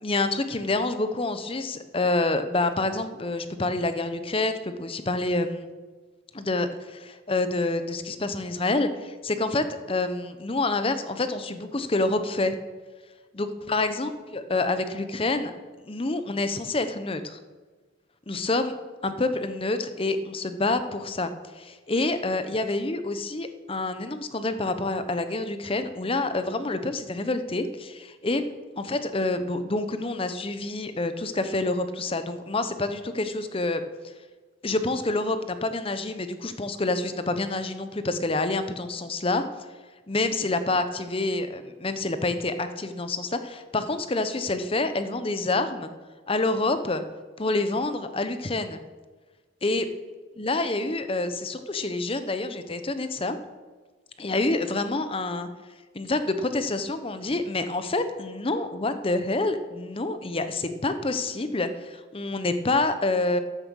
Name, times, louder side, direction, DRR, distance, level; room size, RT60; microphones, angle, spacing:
voice 1, 0.0-5.7 6.3-12.5 13.4-15.5 15.8-17.4 18.3-18.7 19.0-28.5 28.8-33.8 34.6-39.4 40.1-45.9 46.3-47.0 47.4-48.8 49.6-49.8 50.4-53.4 54.2-55.5 55.9-63.4, left 2 dB, 25° left, 10 dB, 0.7 m, -27 dB
13.5 x 7.6 x 6.3 m, 1.4 s
head